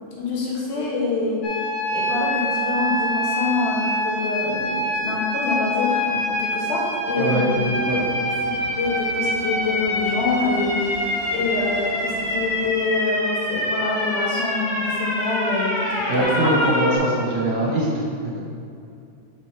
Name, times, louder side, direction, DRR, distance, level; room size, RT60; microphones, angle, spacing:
voice 1, 0.1-1.4 1.9-8.0 8.6-16.5, left 3 dB, 85° left, -5 dB, 2.9 m, -26 dB
sound 1, 1.4-17.0, left 1 dB, 50° left, 0.8 m, -25 dB
voice 2, 7.2-7.5 7.9-8.0 16.1-18.4, right 1 dB, 75° right, -3 dB, 2.5 m, -22 dB
sound 2, 7.5-12.7, right 2 dB, 60° right, 2.5 m, -41 dB
6.1 x 5.1 x 4.5 m, 2.5 s
omnidirectional pair, 3.5 m